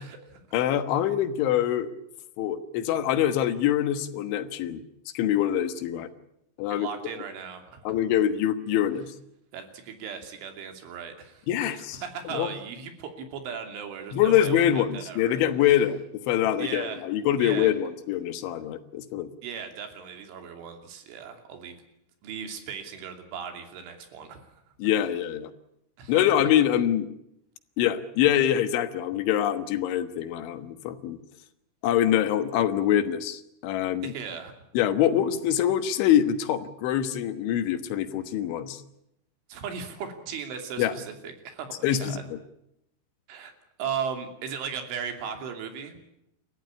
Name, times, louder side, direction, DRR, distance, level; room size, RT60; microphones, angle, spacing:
voice 1, 0.0-0.4 6.7-7.9 9.5-15.8 16.6-17.0 17.4-17.7 19.4-21.8 22.2-24.5 26.0-26.2 34.0-34.5 39.5-42.2 43.3-43.5 43.8-46.0, right 7 dB, 90° right, 6 dB, 5.2 m, -37 dB
voice 2, 0.5-1.9 2.4-4.8 5.2-6.1 6.6-6.9 7.9-9.1 11.5-12.0 12.3-12.5 14.1-19.3 24.8-25.5 26.1-27.1 27.8-31.2 31.8-34.1 34.8-38.8 40.8-40.9 41.8-42.4, left 10 dB, 80° left, 10 dB, 3.7 m, -24 dB
29.5 x 14.0 x 9.8 m, 0.79 s
omnidirectional pair, 5.4 m